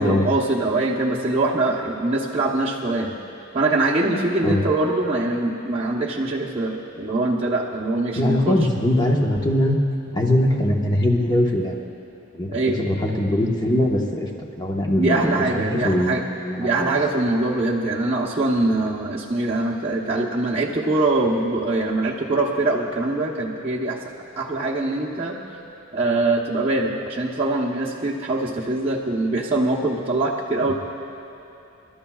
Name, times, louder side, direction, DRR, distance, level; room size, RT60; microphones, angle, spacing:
voice 1, 0.0-3.2 3.5-8.6 12.5-12.8 15.0-16.2 16.6-24.0 24.4-25.4 25.9-30.7, right 2 dB, 25° right, -5 dB, 0.9 m, -23 dB
voice 2, 8.2-9.8 10.1-11.8 12.3-14.3 14.6-16.2 16.4-17.0 30.7-30.8, left 1 dB, 20° left, 0 dB, 1.2 m, -21 dB
27.0 x 12.5 x 2.4 m, 2.9 s
head